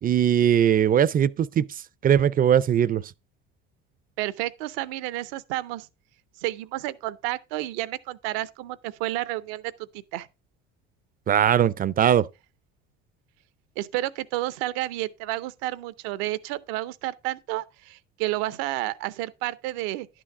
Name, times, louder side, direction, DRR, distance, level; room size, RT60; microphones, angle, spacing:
voice 1, 0.0-1.7 2.0-3.0 11.3-12.3, right 9 dB, 30° right, 0.4 m, -20 dB
voice 2, 4.2-5.9 6.4-10.3 13.8-20.1, right 16 dB, 80° right, 0.7 m, -31 dB
11.0 x 6.2 x 3.6 m
supercardioid pair, 85°, 29 cm